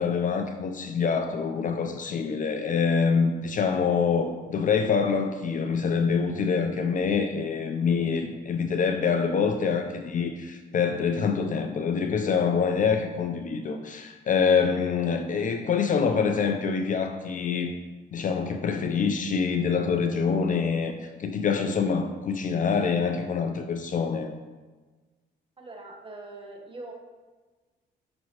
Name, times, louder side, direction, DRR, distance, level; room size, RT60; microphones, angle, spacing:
voice 1, 0.0-17.7 18.1-24.3, left 5 dB, 40° left, 6 dB, 0.4 m, -25 dB
voice 2, 25.6-26.9, right 2 dB, 25° right, 1 dB, 0.9 m, -42 dB
6.0 x 2.9 x 2.9 m, 1.3 s
cardioid pair, 90°, 20 cm